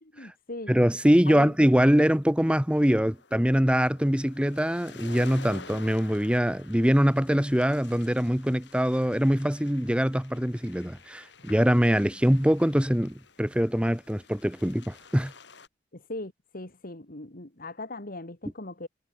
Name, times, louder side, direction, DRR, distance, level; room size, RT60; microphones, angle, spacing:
voice 1, 0.0-0.7 1.3-1.5 15.9-18.9, left 2 dB, 50° left, 2.8 m, -39 dB
voice 2, 0.7-15.3, equal, 5° right, 1.3 m, -23 dB
sound 1, 1.4-15.7, left 4 dB, 70° left, 4.5 m, -50 dB
head